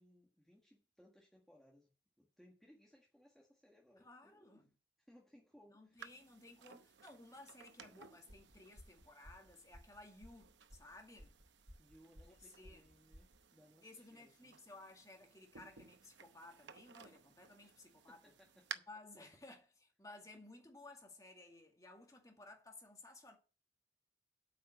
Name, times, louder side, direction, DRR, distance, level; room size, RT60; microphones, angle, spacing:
voice 1, 0.0-1.9 2.2-4.6 5.1-6.1 11.8-14.6 17.6-18.9 19.2-19.3, equal, ahead, 1.7 m, -66 dB
voice 2, 4.0-4.7 5.7-11.3 12.3-12.8 13.8-18.2 18.9-23.4, left 2 dB, 20° left, 2.1 m, -57 dB
sound 1, 6.0-18.7, right 7 dB, 85° right, 0.8 m, -57 dB
sound 2, 8.3-13.4, equal, 70° right, 3.4 m, -59 dB
8.5 x 5.6 x 8.0 m
head